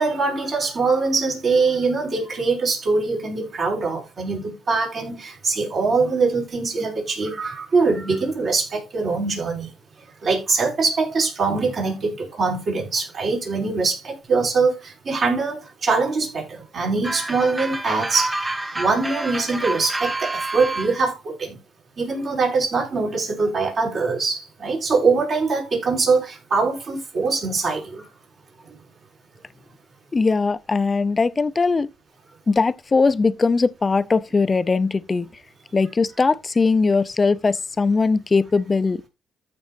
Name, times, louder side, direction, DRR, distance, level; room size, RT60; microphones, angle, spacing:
voice 1, 0.0-9.7 10.2-18.4 18.7-21.6 22.0-28.1 28.7-28.8, right 4 dB, 50° right, 5.9 m, -23 dB
sound 1, 17.0-20.9, right 2 dB, 15° right, 1.0 m, -28 dB
voice 2, 30.1-31.9 32.5-35.3 35.7-39.1, left 4 dB, 30° left, 0.6 m, -20 dB
14.5 x 6.2 x 2.6 m
cardioid pair, 90°, 0 cm